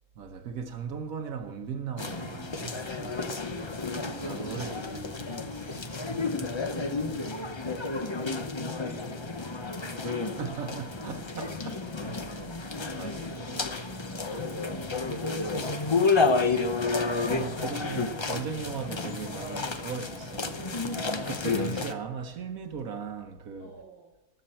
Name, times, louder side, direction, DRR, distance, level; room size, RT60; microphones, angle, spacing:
voice 1, 0.2-3.2 4.0-5.9 10.0-12.2 12.9-13.7 17.0-23.7, right 6 dB, 75° right, 1.4 m, -38 dB
sound 1, 2.0-21.9, left 3 dB, 25° left, 0.6 m, -31 dB
voice 2, 2.6-3.9 4.6-4.9 6.1-12.3 12.8-16.4 23.6-24.1, right 2 dB, 20° right, 5.8 m, -55 dB
20.0 x 8.0 x 4.3 m
omnidirectional pair, 1.5 m